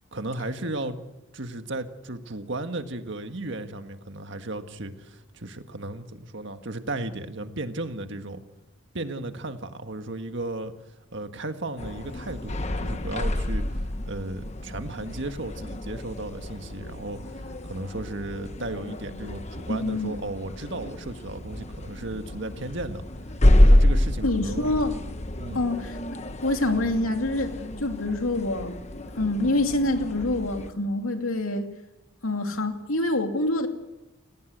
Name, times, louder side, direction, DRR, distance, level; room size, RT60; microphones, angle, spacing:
voice 1, 0.1-1.0 1.3-8.4 8.9-10.7 11.1-13.8 14.1-23.0 23.6-24.7 25.4-25.7, right 2 dB, 60° right, 7 dB, 1.7 m, -35 dB
sound 1, 11.8-30.7, left 1 dB, 30° left, 1.1 m, -27 dB
voice 2, 19.7-20.2 24.2-25.0 25.5-26.0 26.4-28.8 29.2-31.7 32.2-33.7, left 2 dB, 85° left, 5 dB, 2.7 m, -26 dB
28.5 x 18.0 x 8.1 m, 1.0 s
head